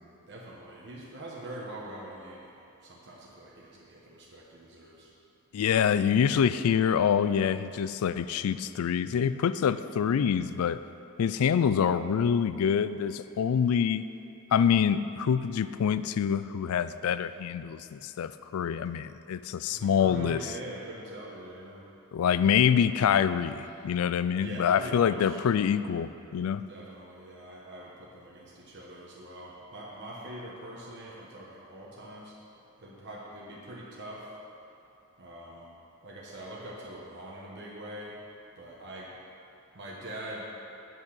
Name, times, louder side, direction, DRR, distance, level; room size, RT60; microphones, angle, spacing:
voice 1, 0.3-2.5 2.8-5.1 19.7-21.8 24.4-25.4 26.7-32.3 32.8-34.2 35.2-35.7 36.0-38.1 38.6-39.1 39.7-40.4, right 1 dB, 55° right, -5 dB, 1.2 m, -43 dB
voice 2, 5.5-10.8 11.2-14.0 14.5-20.6 22.1-26.6, left 7 dB, 85° left, 14 dB, 0.3 m, -26 dB
9.2 x 6.0 x 6.4 m, 2.8 s
head